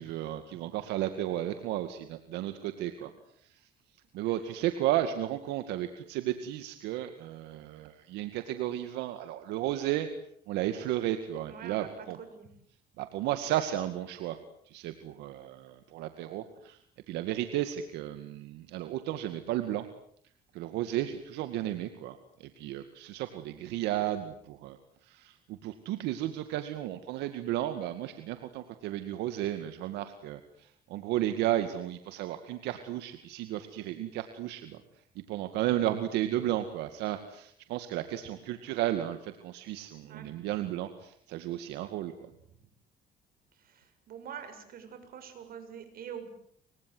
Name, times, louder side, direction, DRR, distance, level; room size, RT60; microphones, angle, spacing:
voice 1, 0.0-3.1 3.4-3.5 4.1-10.1 10.5-12.2 13.0-14.4 14.7-16.8 17.1-19.9 20.5-24.8 25.0-34.8 35.2-42.3, right 13 dB, 90° right, 9 dB, 2.2 m, -33 dB
voice 2, 11.5-12.5 40.0-40.4 43.6-46.3, right 8 dB, 60° right, 8 dB, 7.2 m, -45 dB
29.0 x 25.0 x 8.0 m, 0.64 s
cardioid pair, 110°, 17 cm